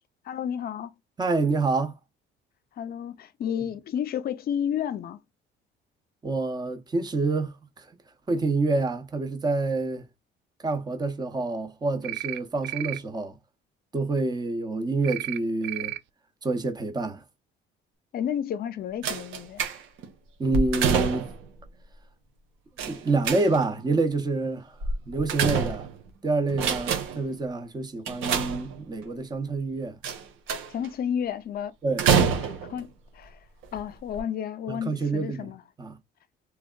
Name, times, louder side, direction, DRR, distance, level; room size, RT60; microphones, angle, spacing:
voice 1, 0.3-0.9 2.8-5.2 18.1-19.6 30.7-31.7 32.1-32.3 32.7-33.4 33.7-35.6, left 9 dB, 50° left, 0.6 m, -31 dB
voice 2, 1.2-2.0 3.6-3.7 6.2-7.9 8.3-10.1 10.6-13.4 13.9-16.0 16.4-17.2 20.4-21.3 22.8-24.8 25.1-25.9 26.2-30.0 31.8-32.1 34.7-35.5 35.8-36.0, right 3 dB, 20° right, 0.8 m, -27 dB
sound 1, 12.0-12.4 12.6-13.0 15.0-15.4 15.6-16.0, right 17 dB, 60° right, 0.5 m, -33 dB
sound 2, 19.0-20.1 20.5-21.5 22.8-23.8 24.8-26.1 26.5-27.3 28.1-29.0 30.0-30.9 32.0-32.8 33.6-33.8 34.1-34.2, right 6 dB, 85° right, 1.3 m, -26 dB
3.4 x 3.3 x 2.3 m
cardioid pair, 125°, 21 cm